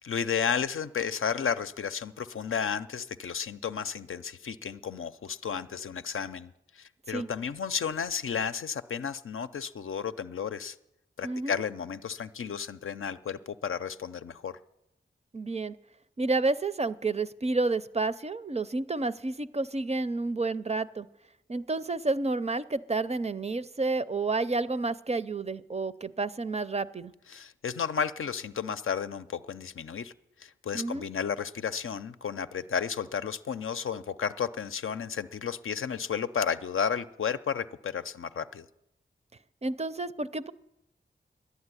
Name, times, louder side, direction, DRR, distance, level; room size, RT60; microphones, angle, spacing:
voice 1, 0.0-10.8 11.2-14.6 27.3-30.1 30.4-38.6, left 7 dB, 80° left, 10 dB, 0.5 m, -33 dB
voice 2, 11.2-11.6 15.3-15.8 16.2-21.1 21.5-27.1 30.7-31.1 39.6-40.5, right 3 dB, 30° right, 13 dB, 0.5 m, -30 dB
11.0 x 8.2 x 9.7 m, 0.88 s
wide cardioid pair, 55°, 21 cm